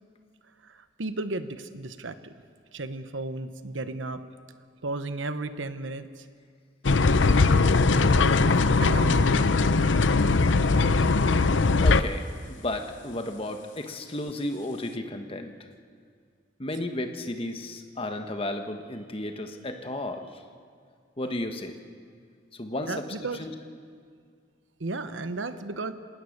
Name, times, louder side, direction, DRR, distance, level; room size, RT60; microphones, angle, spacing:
voice 1, 0.6-2.4 2.7-4.2 4.8-6.3 8.5-9.8 22.9-23.4 24.8-25.9, right 2 dB, 90° right, 11 dB, 1.1 m, -34 dB
sound 1, 6.8-12.0, left 3 dB, 80° left, 0.7 m, -20 dB
voice 2, 11.8-15.5 16.6-20.4 21.2-21.8 22.6-22.9 23.4-23.5, left 1 dB, 30° left, 6 dB, 1.4 m, -33 dB
27.0 x 18.0 x 6.7 m, 2.1 s
head